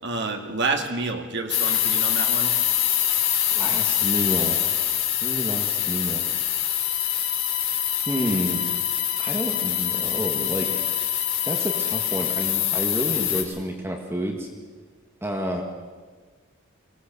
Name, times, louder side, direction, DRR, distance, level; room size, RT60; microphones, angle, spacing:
voice 1, 0.0-2.5, right 3 dB, 55° right, 4 dB, 2.3 m, -28 dB
sound 1, 1.5-13.4, left 11 dB, 70° left, 3.3 m, -24 dB
voice 2, 3.5-4.7 5.2-6.2 8.1-8.6 9.2-10.7 11.4-14.5 15.2-15.6, equal, 10° right, 1 dB, 1.9 m, -29 dB
23.5 x 18.0 x 6.9 m, 1.4 s
head